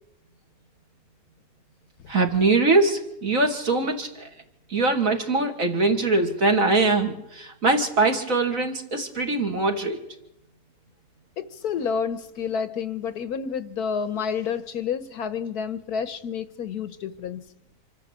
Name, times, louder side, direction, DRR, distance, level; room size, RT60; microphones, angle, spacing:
voice 1, 2.1-4.3 4.7-10.0, right 3 dB, 50° right, 3 dB, 2.8 m, -22 dB
voice 2, 11.4-17.5, left 6 dB, 65° left, 12 dB, 1.4 m, -29 dB
26.5 x 13.5 x 8.3 m, 0.85 s
omnidirectional pair, 1.8 m